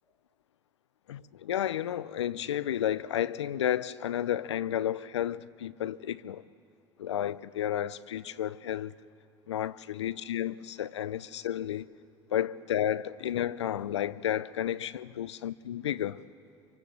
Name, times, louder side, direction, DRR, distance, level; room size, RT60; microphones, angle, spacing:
voice 1, 1.1-6.4 7.0-8.9 9.5-11.9 12.3-16.2, left 11 dB, 85° left, 0.6 m, -32 dB
26.0 x 24.0 x 7.6 m
hypercardioid pair, 65°, 14 cm